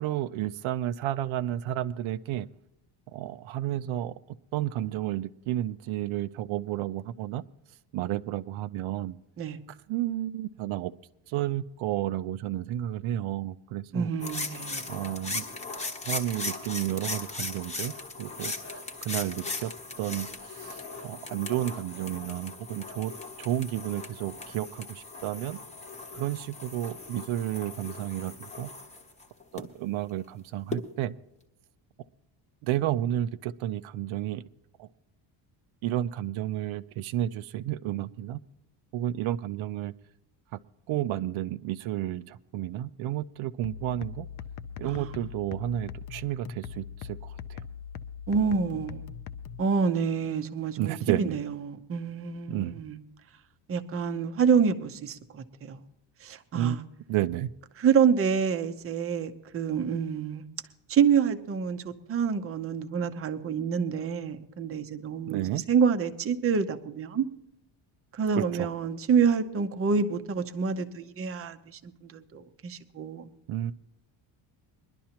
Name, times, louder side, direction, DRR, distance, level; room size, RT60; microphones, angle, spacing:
voice 1, 0.0-2.5 3.1-4.1 4.5-7.4 7.9-9.2 9.9-10.9 11.3-14.1 14.9-15.5 16.0-17.9 18.2-19.7 20.0-23.1 23.4-25.6 26.1-28.7 29.5-31.1 32.6-34.4 34.8-34.9 35.8-38.4 38.9-39.9 40.5-40.6 40.9-44.3 44.8-47.6 50.8-51.4 52.5-52.8 56.5-57.5 65.3-65.6 68.4-68.7 73.5-73.7, right 13 dB, 75° right, 11 dB, 0.7 m, -31 dB
voice 2, 13.9-14.8 44.8-45.1 48.3-49.0 49.6-53.0 53.7-55.8 56.2-56.8 57.8-60.4 60.9-67.2 68.1-73.2, right 6 dB, 30° right, 7 dB, 0.7 m, -27 dB
sound 1, 14.2-29.6 30.7-30.8, left 3 dB, 15° left, 1.0 m, -38 dB
sound 2, 43.6-49.6, left 7 dB, 45° left, 0.5 m, -41 dB
22.0 x 11.5 x 2.9 m, 0.89 s
cardioid pair, 180°, 48 cm